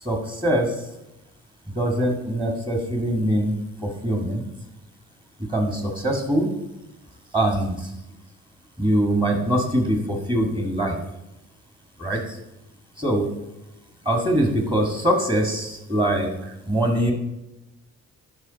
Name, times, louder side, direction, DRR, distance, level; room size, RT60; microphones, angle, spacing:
voice 1, 0.0-0.8 1.8-4.4 5.5-6.6 7.3-7.9 8.8-11.0 12.0-12.4 13.0-13.4 14.1-17.1, right 1 dB, 15° right, 2 dB, 1.8 m, -23 dB
12.0 x 4.8 x 4.0 m, 0.91 s
cardioid pair, 90°, 30 cm